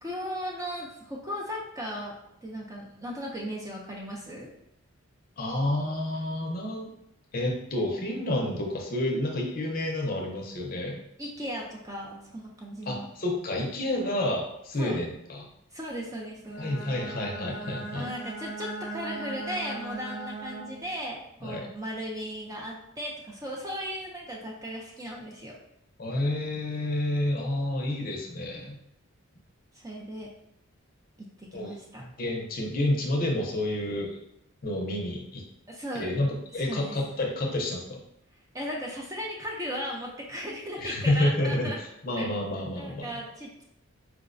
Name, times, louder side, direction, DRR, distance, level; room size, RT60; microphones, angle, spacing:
voice 1, 0.0-4.5 11.2-13.1 14.8-15.0 15.7-16.8 17.9-25.6 29.7-30.3 31.2-32.1 35.7-36.1 36.6-37.0 38.5-41.8 42.2-42.3 42.8-43.6, equal, 15° right, -2 dB, 0.4 m, -36 dB
voice 2, 5.4-6.9 7.3-11.0 12.9-15.5 16.6-18.1 21.4-21.7 26.0-28.8 31.5-31.7 32.2-34.2 34.6-35.4 36.0-38.0 40.8-43.1, left 1 dB, 40° left, 0 dB, 0.5 m, -29 dB
Bowed string instrument, 16.4-20.9, right 2 dB, 90° right, 1.0 m, -38 dB
4.6 x 2.1 x 2.5 m, 0.78 s
head